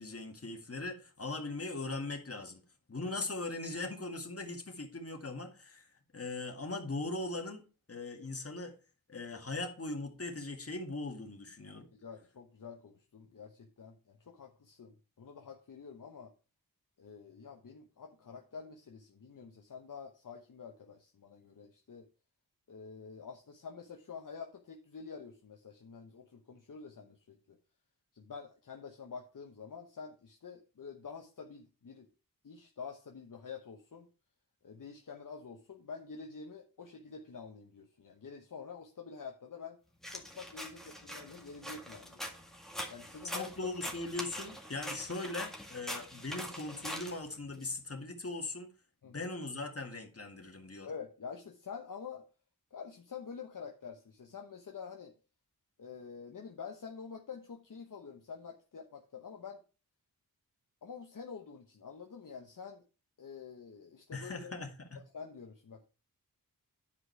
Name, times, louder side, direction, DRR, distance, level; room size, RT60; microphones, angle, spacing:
voice 1, 0.0-2.6 2.9-5.9 6.1-8.7 9.1-11.9 43.3-48.7 49.0-50.9 64.1-65.0, left 2 dB, 40° left, 3 dB, 2.2 m, -40 dB
voice 2, 11.9-16.3 17.0-22.1 22.7-27.6 28.1-32.1 32.4-34.1 34.6-39.8 40.1-42.2 42.9-43.7 49.0-49.3 50.8-52.2 52.7-55.1 55.8-59.6 60.8-62.8 63.2-64.5 64.9-65.9, left 6 dB, 65° left, 2 dB, 1.1 m, -47 dB
sound 1, 40.0-47.7, equal, ahead, 2.0 m, -43 dB
10.5 x 5.0 x 4.6 m, 0.33 s
wide cardioid pair, 85°, 35 cm